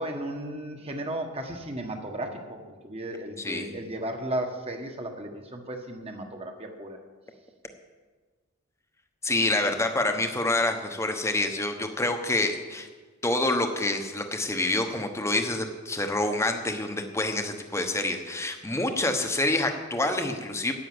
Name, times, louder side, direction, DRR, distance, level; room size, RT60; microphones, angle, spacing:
voice 1, 0.0-7.0, right 1 dB, 30° right, 3 dB, 1.5 m, -35 dB
voice 2, 3.4-3.7 9.2-12.9 13.2-20.7, left 2 dB, 15° left, 5 dB, 1.1 m, -27 dB
10.5 x 9.5 x 7.9 m, 1.4 s
head